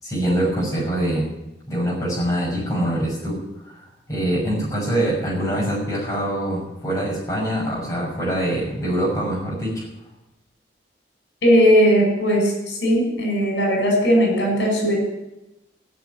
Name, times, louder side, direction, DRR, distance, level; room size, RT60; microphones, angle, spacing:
voice 1, 0.0-1.2 1.7-3.4 4.1-9.8, right 1 dB, 20° left, -3 dB, 6.3 m, -24 dB
voice 2, 11.4-15.0, equal, 70° left, 1 dB, 5.8 m, -18 dB
15.5 x 6.3 x 9.5 m, 0.93 s
head